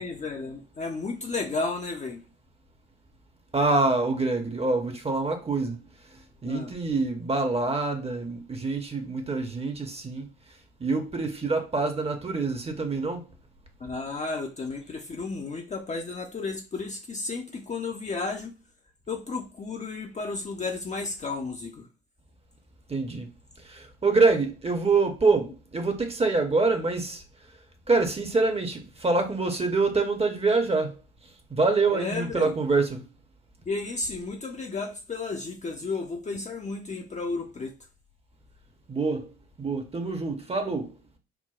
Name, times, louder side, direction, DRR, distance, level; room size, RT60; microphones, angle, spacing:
voice 1, 0.0-2.2 6.4-6.7 13.8-18.6 19.1-21.9 31.9-32.5 33.7-37.7, left 3 dB, 20° left, 0.6 m, -33 dB
voice 2, 3.5-5.8 6.4-10.3 10.8-13.2 22.9-23.3 23.6-27.2 27.9-30.9 31.5-33.0 38.9-39.3 39.6-40.9, right 3 dB, 15° right, 0.8 m, -25 dB
5.8 x 2.1 x 2.4 m
figure-of-eight pair, 50°, 34 cm